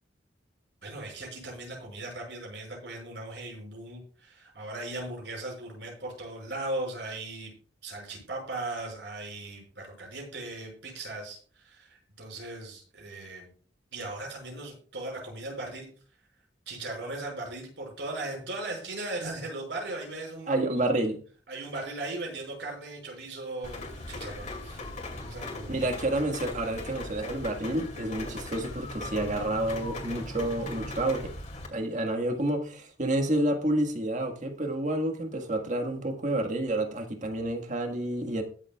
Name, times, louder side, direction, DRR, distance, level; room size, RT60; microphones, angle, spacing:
voice 1, 0.8-7.5 7.8-13.5 13.9-15.9 16.7-20.5 21.5-24.8 25.1-25.9, right 2 dB, 75° right, 5.7 m, -38 dB
voice 2, 20.5-21.2 25.7-31.3 31.7-38.4, right 1 dB, 45° right, 1.6 m, -29 dB
Rain, 23.6-31.7, left 2 dB, 40° left, 2.4 m, -39 dB
21.0 x 7.4 x 2.4 m
head